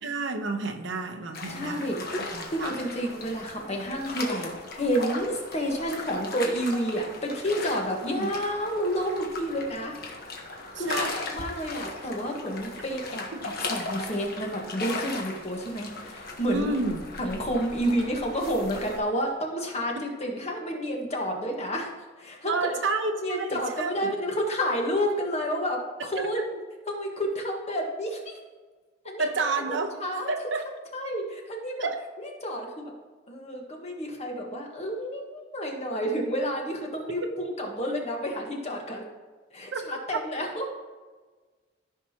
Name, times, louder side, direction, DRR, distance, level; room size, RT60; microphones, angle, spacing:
voice 1, 0.0-1.9 2.3-2.7 8.1-8.3 10.7-11.1 13.3-13.4 16.5-17.0 19.9-20.0 22.4-24.1 29.2-29.9 30.3-30.6 31.8-32.0 37.2-37.3 39.7-39.8, right 3 dB, 80° right, 4 dB, 1.0 m, -30 dB
sound 1, 1.3-19.0, left 2 dB, 55° left, 1.3 m, -37 dB
voice 2, 1.5-2.0 2.5-10.0 10.6-13.3 13.7-16.7 17.2-21.9 22.2-22.7 23.2-26.6 26.9-28.3 29.0-29.3 29.7-30.3 30.9-31.9 32.2-32.9 33.3-39.1 39.5-40.8, equal, 35° left, 1 dB, 1.5 m, -30 dB
14.0 x 5.9 x 2.9 m, 1.3 s
head